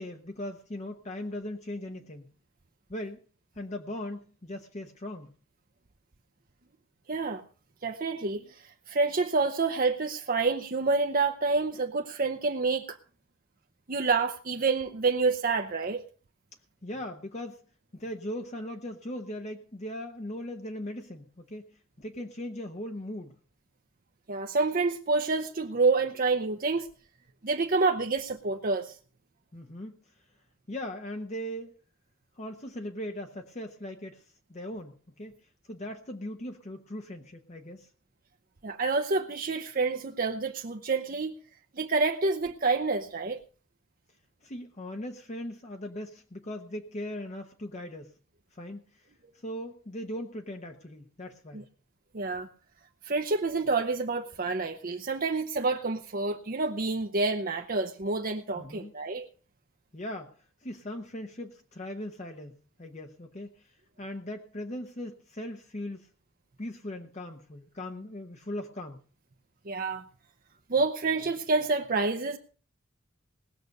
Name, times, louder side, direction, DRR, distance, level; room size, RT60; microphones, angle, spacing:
voice 1, 0.0-2.3 2.9-3.2 3.5-5.3 16.8-17.6 17.9-23.4 29.5-30.0 30.7-31.7 32.4-37.9 44.4-48.1 48.5-49.1 49.3-51.7 58.5-58.9 59.9-60.4 60.6-66.1 66.6-69.0, left 1 dB, 35° left, 5 dB, 0.9 m, -39 dB
voice 2, 7.1-7.4 7.8-13.0 13.9-16.0 24.3-26.9 27.4-29.0 38.6-41.3 41.7-43.4 51.5-51.6 52.1-52.5 53.0-59.3 69.7-70.0 70.7-72.4, right 3 dB, 45° right, 5 dB, 0.8 m, -28 dB
19.0 x 6.8 x 6.5 m, 0.41 s
head